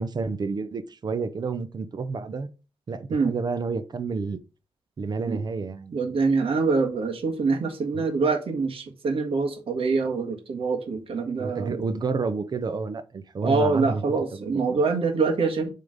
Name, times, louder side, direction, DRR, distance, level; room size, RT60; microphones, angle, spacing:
voice 1, 0.0-2.5 2.9-4.4 5.0-5.9 7.9-8.1 11.4-14.0 14.3-14.8, right 4 dB, 50° right, 0.7 m, -30 dB
voice 2, 5.9-11.8 13.4-15.7, right 4 dB, 85° right, 1.7 m, -25 dB
7.5 x 3.8 x 5.1 m
wide cardioid pair, 160°, 9 cm